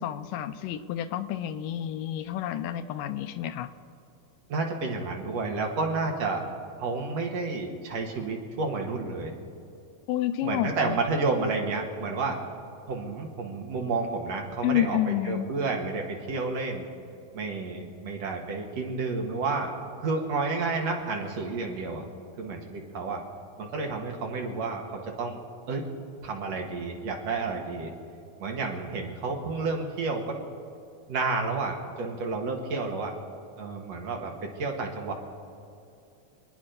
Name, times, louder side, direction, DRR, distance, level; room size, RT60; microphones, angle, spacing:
voice 1, 0.0-3.7 10.1-11.0 14.6-15.5, left 11 dB, 80° left, 10 dB, 2.1 m, -29 dB
voice 2, 4.5-6.4 6.8-9.3 10.4-12.4 12.9-16.9 17.3-19.7 20.0-22.0 22.4-23.2 23.6-25.4 25.7-25.8 26.2-27.9 28.4-30.2 31.1-33.1 33.6-35.1, right 3 dB, 55° right, 1 dB, 2.6 m, -30 dB
27.0 x 9.6 x 5.2 m, 2.6 s
omnidirectional pair, 4.2 m